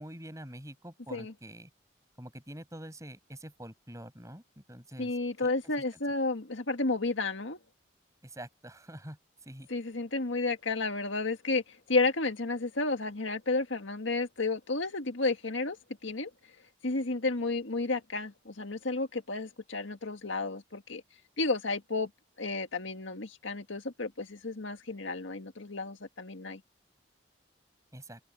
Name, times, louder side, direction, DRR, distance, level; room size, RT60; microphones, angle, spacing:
voice 1, 0.0-1.7 2.2-5.5 8.2-9.7 27.9-28.2, right 1 dB, 15° right, 7.7 m, -46 dB
voice 2, 5.0-7.6 9.7-15.8 16.0-16.3 16.8-21.0 21.4-22.1 22.4-26.6, left 3 dB, 80° left, 1.9 m, -32 dB
head